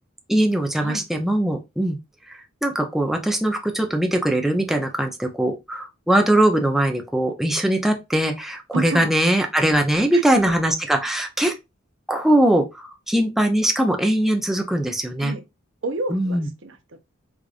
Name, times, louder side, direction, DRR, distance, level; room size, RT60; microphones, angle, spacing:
voice 1, 0.3-2.0 2.3-11.5 12.1-15.3 16.1-16.5, right 1 dB, ahead, 0.5 m, -21 dB
voice 2, 8.7-9.1 10.1-10.5 15.2-15.4 15.8-17.0, right 2 dB, 70° right, 0.7 m, -30 dB
4.9 x 2.4 x 2.4 m
head